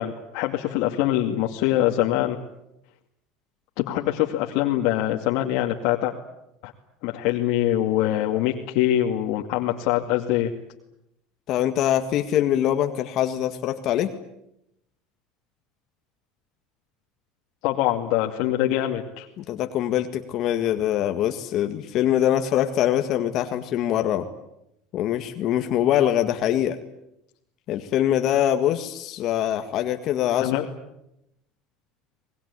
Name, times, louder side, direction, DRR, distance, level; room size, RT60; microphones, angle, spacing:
voice 1, 0.0-2.4 3.8-6.1 6.6-6.7 7.0-10.5 17.6-19.3 30.3-30.6, left 13 dB, 70° left, 0 dB, 2.4 m, -24 dB
voice 2, 11.5-14.1 19.4-24.3 24.9-26.8 27.7-30.5, left 11 dB, 55° left, 7 dB, 1.8 m, -23 dB
24.5 x 20.5 x 9.8 m, 0.84 s
supercardioid pair, 115°, 0 cm